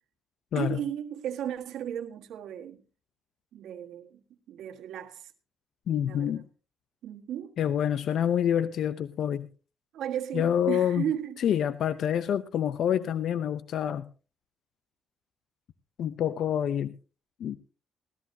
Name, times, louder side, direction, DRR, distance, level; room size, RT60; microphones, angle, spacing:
voice 1, 0.5-2.8 3.5-4.2 4.5-5.3 6.0-6.4 7.0-7.5 9.9-11.4, right 10 dB, 80° right, 1.5 m, -35 dB
voice 2, 5.9-6.4 7.6-9.5 10.3-11.0 11.4-14.0 16.0-16.9 17.4-17.6, left 9 dB, 70° left, 0.6 m, -27 dB
18.5 x 13.5 x 2.7 m
cardioid pair, 90°, 0 cm